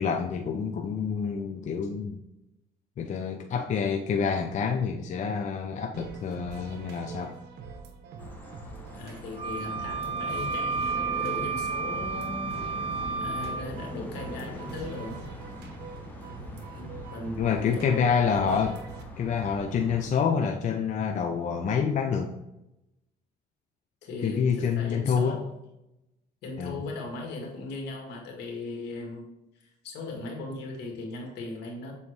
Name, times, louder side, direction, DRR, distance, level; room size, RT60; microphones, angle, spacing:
voice 1, 0.0-2.2 3.0-7.3 17.4-18.8 19.2-22.3 24.2-25.4 26.6-26.8, left 6 dB, 45° left, 3 dB, 0.6 m, -27 dB
sound 1, 5.9-19.0, right 5 dB, 80° right, 1.0 m, -45 dB
sound 2, 8.2-20.1, equal, 10° left, 1.5 m, -42 dB
voice 2, 8.9-12.7 13.2-15.2 16.4-17.3 17.6-18.5 24.0-25.5 26.4-29.3 29.6-31.9, left 3 dB, 80° left, 0 dB, 2.1 m, -38 dB
Wind instrument woodwind instrument, 9.4-13.6, right 5 dB, 35° right, 0.6 m, -31 dB
7.1 x 4.2 x 3.2 m, 0.89 s
cardioid pair, 110°, 17 cm